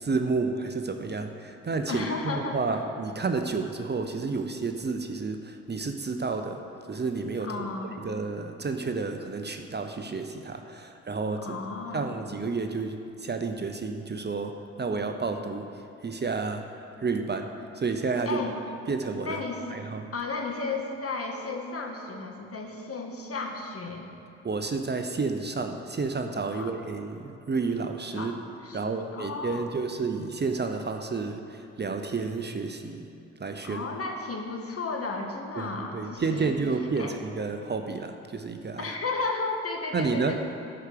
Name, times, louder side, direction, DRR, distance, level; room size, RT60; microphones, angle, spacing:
voice 1, 0.0-6.6 6.9-7.7 8.0-11.6 11.9-15.7 16.0-18.4 18.9-19.4 19.7-20.1 24.4-28.3 28.7-33.1 33.4-33.8 35.6-39.0 39.9-40.4, right 4 dB, 30° right, 6 dB, 0.8 m, -31 dB
voice 2, 1.9-2.8 7.4-8.0 11.4-12.1 18.2-18.6 19.2-19.8 20.1-24.1 26.5-26.7 28.1-28.3 28.6-29.8 33.6-36.5 37.0-37.2 38.8-40.4, left 3 dB, 45° left, 2 dB, 1.6 m, -34 dB
11.0 x 5.0 x 6.7 m, 2.8 s
supercardioid pair, 50°, 33 cm